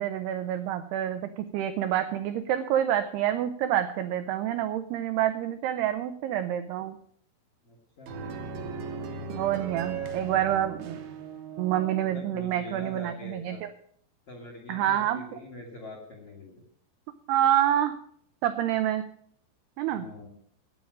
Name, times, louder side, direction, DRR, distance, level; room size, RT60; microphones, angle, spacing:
voice 1, 0.0-7.0 9.3-11.0 11.6-13.7 14.7-15.2 17.3-18.0 18.4-19.0 19.8-20.1, right 11 dB, 85° right, 9 dB, 2.3 m, -27 dB
voice 2, 7.6-8.1 12.0-13.6 14.3-16.6 19.9-20.3, left 2 dB, 55° left, 1 dB, 1.6 m, -44 dB
sound 1, 8.1-12.2, right 4 dB, 70° right, 2.3 m, -38 dB
10.5 x 8.7 x 7.5 m, 0.63 s
omnidirectional pair, 5.5 m